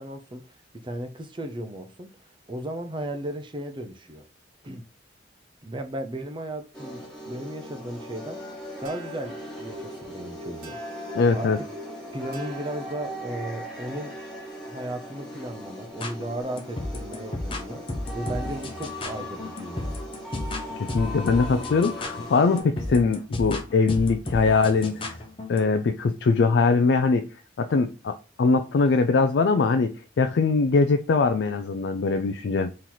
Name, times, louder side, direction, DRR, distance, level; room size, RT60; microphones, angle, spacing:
voice 1, 0.0-2.1 2.5-4.3 4.6-4.8 5.6-8.4 8.8-10.8 11.3-11.5 12.1-14.1 14.6-20.0, right 1 dB, 25° right, 0.6 m, -35 dB
sound 1, 6.7-22.6, equal, 5° left, 1.2 m, -39 dB
sound 2, 8.8-13.6, right 1 dB, 45° right, 1.3 m, -44 dB
voice 2, 11.2-11.6 20.8-25.1 25.5-27.3 27.6-32.7, left 4 dB, 65° left, 0.4 m, -22 dB
sound 3, 15.9-25.7, left 2 dB, 30° left, 0.7 m, -34 dB
4.3 x 3.1 x 3.8 m
head